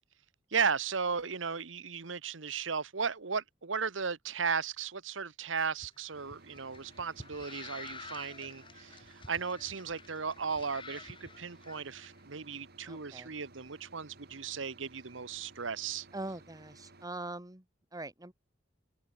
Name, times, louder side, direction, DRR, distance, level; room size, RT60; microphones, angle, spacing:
voice 1, 0.5-16.1, right 5 dB, 85° right, 1.2 m, -35 dB
sound 1, 5.7-12.1, left 4 dB, 25° left, 1.7 m, -50 dB
sound 2, 6.1-17.1, right 2 dB, 55° right, 4.0 m, -58 dB
voice 2, 12.9-13.3 16.1-17.6 17.9-18.3, right 2 dB, 20° right, 1.9 m, -42 dB
head